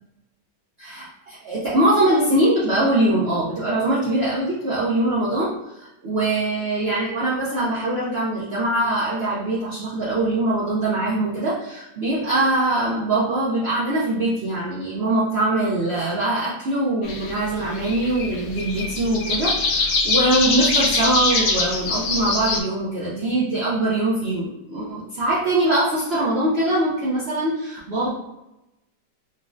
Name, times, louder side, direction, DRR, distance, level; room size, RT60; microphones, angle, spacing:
voice 1, 0.8-28.1, right 1 dB, 90° right, -7 dB, 0.5 m, -22 dB
sound 1, 17.0-22.6, left 3 dB, 75° left, 1.2 m, -23 dB
3.6 x 2.0 x 2.4 m, 0.94 s
omnidirectional pair, 1.9 m